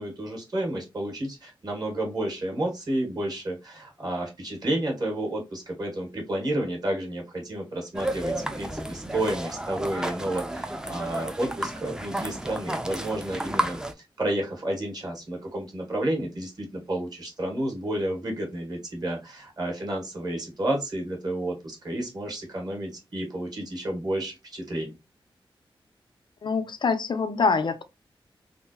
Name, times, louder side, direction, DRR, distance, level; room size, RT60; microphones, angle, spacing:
voice 1, 0.0-13.8 14.2-24.9, right 1 dB, 45° right, 1.5 m, -31 dB
sound 1, 7.9-13.9, right 1 dB, 10° right, 0.4 m, -32 dB
voice 2, 26.4-27.8, left 4 dB, 60° left, 0.4 m, -25 dB
3.6 x 2.4 x 2.7 m
wide cardioid pair, 120°, 9 cm